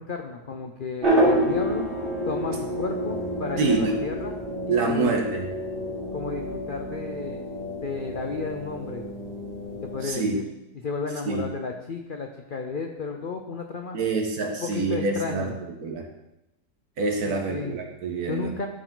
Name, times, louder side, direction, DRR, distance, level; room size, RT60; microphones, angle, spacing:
voice 1, 0.0-1.9 2.3-4.3 4.7-5.1 6.1-7.4 7.8-9.0 9.8-10.4 10.8-14.0 14.6-15.5 17.2-17.8 18.3-18.7, left 4 dB, 70° left, 4 dB, 0.5 m, -33 dB
sound 1, 1.0-10.1, equal, 30° right, 2.7 m, -28 dB
voice 2, 3.6-4.0 4.7-5.4 10.0-10.4 11.3-11.5 13.9-15.5 15.8-16.0 17.0-18.5, right 3 dB, 65° right, 2 dB, 1.7 m, -26 dB
12.5 x 4.8 x 3.8 m, 0.90 s
omnidirectional pair, 1.8 m